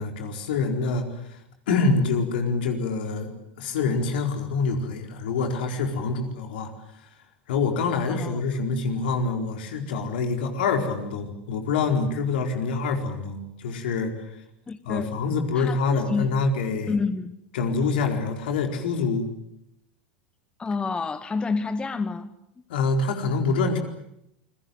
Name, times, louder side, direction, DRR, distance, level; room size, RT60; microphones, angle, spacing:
voice 1, 0.0-1.4 1.7-3.3 3.6-6.7 7.5-14.1 14.8-16.9 17.5-19.3 22.7-23.8, left 4 dB, 65° left, 4 dB, 4.4 m, -26 dB
voice 2, 8.1-8.4 14.7-15.1 15.5-16.3 16.9-17.3 20.6-22.3, left 4 dB, 15° left, 13 dB, 1.2 m, -28 dB
28.5 x 22.0 x 7.8 m, 0.80 s
figure-of-eight pair, 85°, 6 cm